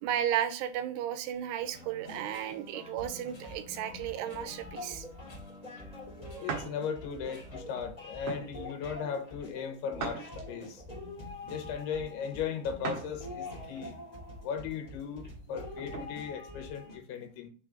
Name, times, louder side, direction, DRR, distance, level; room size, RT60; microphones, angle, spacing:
voice 1, 0.0-5.1, right 10 dB, 90° right, 10 dB, 2.7 m, -34 dB
sound 1, 1.6-7.8, left 3 dB, 35° left, 3.1 m, -52 dB
sound 2, 2.0-17.0, left 1 dB, 15° left, 1.8 m, -45 dB
voice 2, 6.4-10.8 11.4-14.0 14.4-17.5, left 7 dB, 80° left, 6 dB, 2.9 m, -37 dB
sound 3, 6.5-6.8 7.3-7.5 8.2-8.5 10.0-10.7 12.8-13.1 13.6-13.7 15.4-16.1, right 5 dB, 60° right, 2.6 m, -38 dB
6.2 x 4.8 x 3.8 m, 0.39 s
omnidirectional pair, 4.7 m